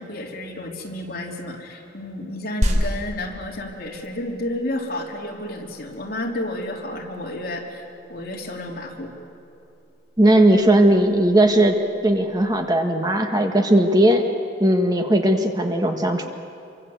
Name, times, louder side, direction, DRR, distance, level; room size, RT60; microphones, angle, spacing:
voice 1, 0.0-9.1, left 1 dB, 55° left, -1 dB, 3.6 m, -31 dB
sound 1, 2.6-12.6, equal, 40° right, 3.0 m, -32 dB
voice 2, 10.2-11.8 12.0-14.3 14.6-16.3, right 1 dB, 20° right, 4 dB, 1.5 m, -17 dB
27.0 x 24.0 x 8.1 m, 2.7 s
head